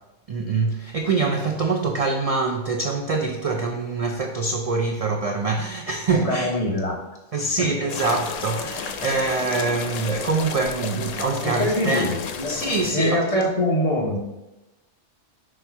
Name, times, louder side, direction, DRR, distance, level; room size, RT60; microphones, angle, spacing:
voice 1, 0.3-6.5 7.3-12.1 12.5-13.5, right 3 dB, 65° right, 0.3 m, -24 dB
voice 2, 6.2-7.0 7.6-7.7 11.4-14.2, left 1 dB, 35° left, 0.8 m, -24 dB
sound 1, 7.9-12.9, left 6 dB, 85° left, 1.0 m, -33 dB
5.0 x 4.2 x 4.5 m
omnidirectional pair, 1.3 m